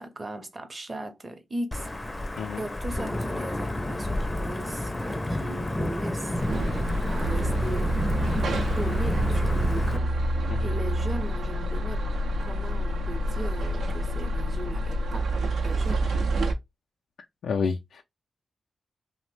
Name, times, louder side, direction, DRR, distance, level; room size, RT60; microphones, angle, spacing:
voice 1, 0.0-2.3 2.6-6.4 6.8-12.1 12.4-15.3 15.6-16.1, right 1 dB, 35° right, 0.6 m, -38 dB
Wind / Thunder / Rain, 1.7-10.0, left 1 dB, 20° left, 0.5 m, -30 dB
sound 1, 6.4-16.5, right 1 dB, 90° right, 0.5 m, -27 dB
voice 2, 17.4-18.0, left 5 dB, 90° left, 0.3 m, -29 dB
2.9 x 2.0 x 3.0 m
cardioid pair, 65°, 0 cm